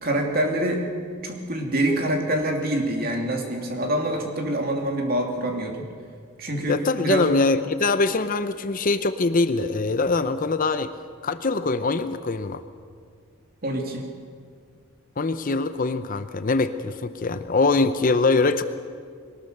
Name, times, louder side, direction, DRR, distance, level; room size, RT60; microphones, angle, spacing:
voice 1, 0.0-0.9 1.2-5.9 6.4-7.3 13.6-14.0, right 1 dB, 45° right, 2 dB, 2.8 m, -25 dB
voice 2, 6.7-10.9 11.2-12.6 15.2-18.6, left 3 dB, 40° left, 11 dB, 0.7 m, -23 dB
21.5 x 19.0 x 6.7 m, 2.1 s
head